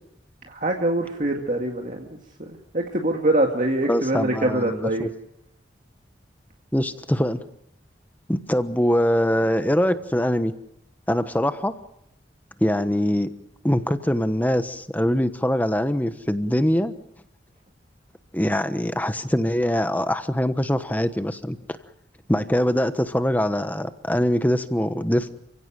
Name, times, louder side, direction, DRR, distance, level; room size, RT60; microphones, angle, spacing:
voice 1, 0.5-2.5 2.7-5.1, right 1 dB, 45° right, 1 dB, 2.1 m, -24 dB
voice 2, 3.9-5.1 6.7-7.4 8.3-10.5 11.1-11.8 12.6-13.3 13.6-16.9 18.3-21.6 22.3-25.3, equal, 10° left, 10 dB, 1.1 m, -23 dB
29.5 x 16.5 x 7.7 m, 0.80 s
head